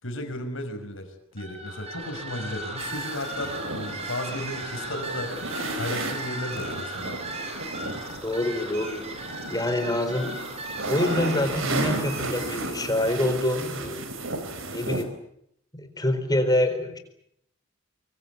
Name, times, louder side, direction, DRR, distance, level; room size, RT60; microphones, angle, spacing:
voice 1, 0.0-5.4 5.8-7.2 14.8-15.1, left 1 dB, 60° left, 7 dB, 5.7 m, -34 dB
sound 1, 1.3-12.7, right 2 dB, 30° right, 4.9 m, -37 dB
sound 2, 2.8-15.0, right 2 dB, 65° right, 4.3 m, -34 dB
voice 2, 8.2-9.0 9.5-10.3 10.9-14.0 14.7-15.1 15.7-17.0, left 1 dB, 20° left, 7 dB, 4.3 m, -26 dB
25.0 x 24.5 x 8.5 m, 0.74 s
head